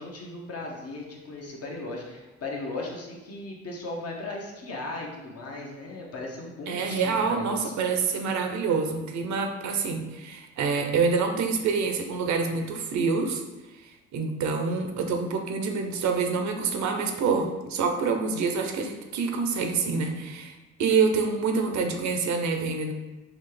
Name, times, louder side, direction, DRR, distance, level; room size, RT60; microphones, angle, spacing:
voice 1, 0.0-7.7, left 2 dB, 55° left, -1 dB, 0.9 m, -37 dB
voice 2, 6.7-13.4 13.8-22.9, right 5 dB, 65° right, 5 dB, 0.6 m, -27 dB
4.1 x 2.4 x 3.2 m, 1.1 s
cardioid pair, 90°, 30 cm